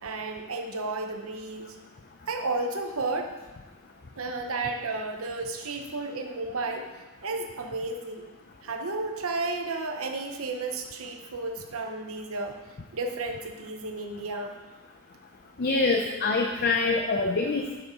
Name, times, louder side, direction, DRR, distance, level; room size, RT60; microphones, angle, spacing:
voice 1, 0.0-1.7 2.3-3.3 4.2-6.9 7.2-8.3 8.6-12.6 12.9-14.6, right 3 dB, 70° right, 4 dB, 0.9 m, -32 dB
voice 2, 15.6-17.8, left 3 dB, 45° left, 3 dB, 0.6 m, -25 dB
8.2 x 6.9 x 5.2 m, 1.2 s
head